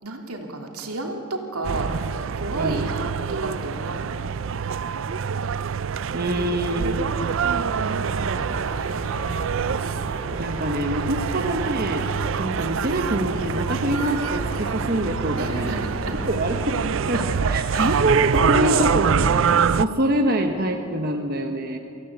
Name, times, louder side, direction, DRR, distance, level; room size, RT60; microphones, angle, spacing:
voice 1, 0.0-2.0 2.3-4.3 15.3-16.1 17.1-18.0 18.4-18.9, right 2 dB, 85° right, 2 dB, 3.0 m, -30 dB
sound 1, 1.6-19.8, right 6 dB, 60° right, 0.4 m, -25 dB
voice 2, 6.1-7.2 10.4-12.1 12.4-15.8 16.3-16.7 17.1-19.1 19.8-21.8, right 1 dB, 45° right, 3 dB, 1.2 m, -25 dB
sound 2, 6.6-16.9, equal, 20° left, 6.8 m, -36 dB
24.5 x 16.0 x 8.3 m, 2.6 s
head